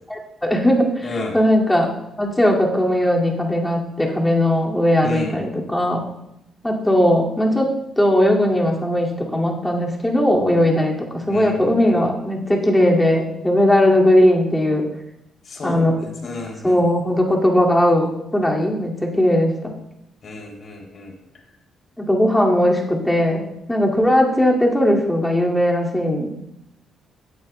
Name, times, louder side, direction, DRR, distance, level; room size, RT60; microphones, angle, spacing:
voice 1, 0.1-1.1 1.3-1.9 2.2-6.1 6.6-14.8 15.6-15.9 16.6-19.7 22.0-23.4 23.7-26.3, left 1 dB, 10° left, -2 dB, 2.2 m, -18 dB
voice 2, 1.0-1.3 5.0-5.4 11.3-12.0 15.5-16.8 20.2-21.1, left 3 dB, 50° left, 0 dB, 2.8 m, -32 dB
16.0 x 9.0 x 2.2 m, 0.84 s
cardioid pair, 90°, 0 cm